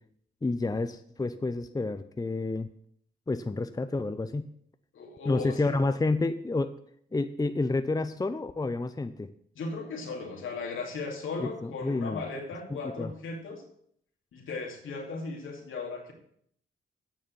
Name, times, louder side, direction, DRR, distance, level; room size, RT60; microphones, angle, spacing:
voice 1, 0.4-2.7 3.3-4.5 5.3-6.7 7.1-9.3 11.4-12.2 12.7-13.1, left 3 dB, 15° left, 10 dB, 0.7 m, -29 dB
voice 2, 4.9-5.8 9.6-13.6 14.3-16.1, left 3 dB, 75° left, 1 dB, 2.4 m, -37 dB
8.9 x 6.4 x 7.1 m, 0.66 s
supercardioid pair, 50°, 21 cm